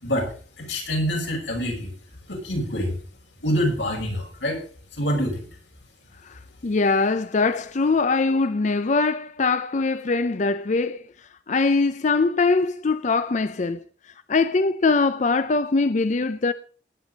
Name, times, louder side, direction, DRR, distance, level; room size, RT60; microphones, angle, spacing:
voice 1, 0.0-1.9 2.3-3.0 3.4-4.6 4.9-5.5, equal, 90° left, 6.2 m, -26 dB
voice 2, 6.2-16.5, left 3 dB, 40° left, 0.5 m, -22 dB
18.5 x 9.2 x 4.0 m
head